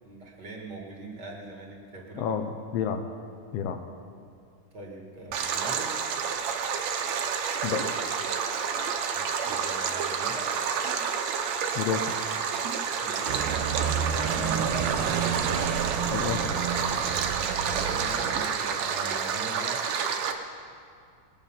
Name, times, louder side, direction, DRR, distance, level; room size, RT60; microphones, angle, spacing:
voice 1, 0.0-2.4 4.7-6.0 9.1-10.6 13.0-13.4 14.1-15.1 17.3-19.8, right 2 dB, 35° right, -1 dB, 2.1 m, -41 dB
voice 2, 2.2-3.0 3.5-3.8 7.6-7.9 11.7-12.1 16.1-16.5, left 7 dB, 75° left, 5 dB, 1.4 m, -30 dB
Stream, 5.3-20.3, right 6 dB, 70° right, 1.9 m, -29 dB
sound 1, 13.3-18.4, right 7 dB, 85° right, 2.5 m, -30 dB
21.0 x 8.9 x 5.7 m, 2.2 s
omnidirectional pair, 3.8 m